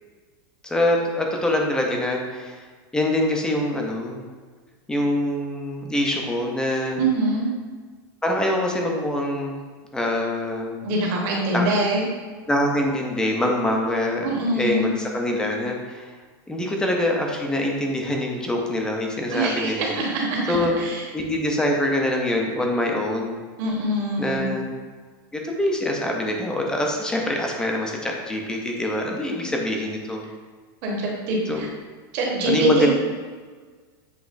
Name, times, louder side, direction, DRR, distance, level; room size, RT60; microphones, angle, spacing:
voice 1, 0.6-2.6 2.9-4.2 4.9-7.0 8.2-9.5 9.9-10.8 11.5-11.7 12.5-14.2 14.5-16.1 16.5-19.9 20.5-20.8 21.1-23.4 24.2-24.7 25.3-30.3 31.5-31.7 32.5-32.9, left 1 dB, 5° left, 1 dB, 0.4 m, -24 dB
voice 2, 7.0-7.5 10.8-12.0 14.2-14.9 19.3-21.0 23.6-24.5 30.8-31.7 32.1-32.9, right 2 dB, 45° right, -3 dB, 1.1 m, -24 dB
7.0 x 2.9 x 2.5 m, 1.5 s
supercardioid pair, 160°, 12 cm